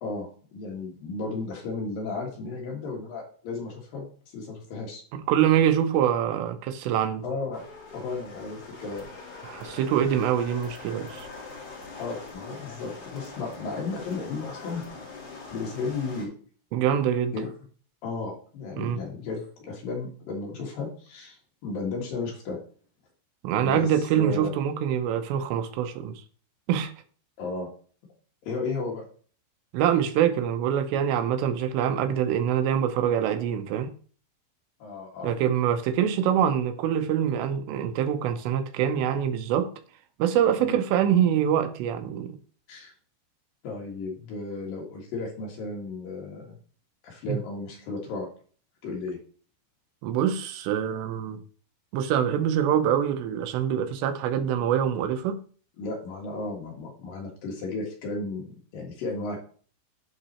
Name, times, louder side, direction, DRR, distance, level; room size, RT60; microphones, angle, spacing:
voice 1, 0.0-4.0 4.3-5.0 7.2-7.7 7.9-9.1 12.0-15.0 15.5-16.3 17.3-17.5 18.0-21.4 21.6-22.6 23.6-23.9 24.1-24.5 27.4-27.7 28.4-29.1 34.8-35.3 40.6-40.8 42.7-42.9 43.6-46.6 47.0-48.3 48.8-49.2 55.8-59.4, left 3 dB, 60° left, 3.2 m, -34 dB
voice 2, 5.1-7.2 9.5-11.3 16.7-17.3 18.8-19.0 23.4-26.1 26.7-26.9 29.7-33.9 35.2-39.7 40.2-42.4 47.3-47.4 50.0-51.4 51.9-55.4, right 9 dB, 85° right, 3.0 m, -25 dB
sound 1, 7.5-16.3, left 3 dB, 40° left, 3.4 m, -43 dB
11.0 x 4.0 x 4.3 m
omnidirectional pair, 5.0 m